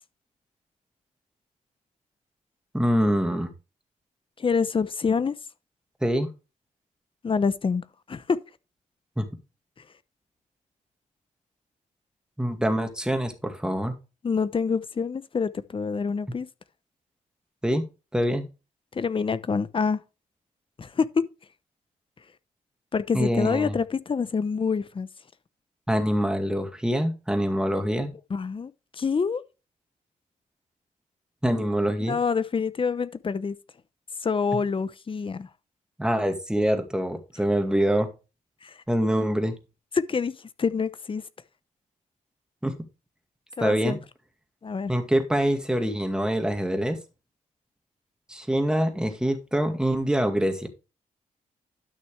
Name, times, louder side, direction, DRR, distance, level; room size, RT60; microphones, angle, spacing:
voice 1, 2.7-3.5 6.0-6.3 9.2-9.3 12.4-13.9 17.6-17.8 18.1-18.5 23.1-23.7 25.9-28.1 31.4-32.2 36.0-38.1 38.9-39.6 42.6-42.7 43.6-44.0 44.9-47.0 48.3-50.7, equal, 5° right, 2.2 m, -25 dB
voice 2, 4.4-5.3 7.2-8.4 14.2-16.5 18.9-20.0 20.8-21.2 22.9-25.1 28.3-29.4 32.0-33.5 34.2-35.5 38.6-38.7 39.9-40.3 40.6-41.2 43.6-44.0 44.6-44.9, left 5 dB, 40° left, 0.8 m, -26 dB
12.0 x 6.3 x 3.3 m
cardioid pair, 90°, 14 cm